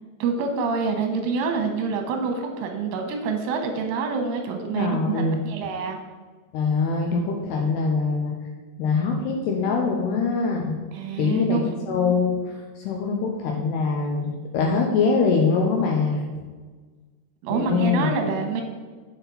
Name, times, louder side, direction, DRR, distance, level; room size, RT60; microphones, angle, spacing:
voice 1, 0.2-6.0 10.9-11.7 17.4-18.6, right 5 dB, 85° right, 3 dB, 3.5 m, -26 dB
voice 2, 4.7-5.4 6.5-8.3 8.8-10.8 11.2-16.3 17.5-18.1, left 4 dB, 80° left, 0 dB, 2.4 m, -23 dB
8.0 x 7.5 x 4.1 m, 1.4 s
omnidirectional pair, 5.6 m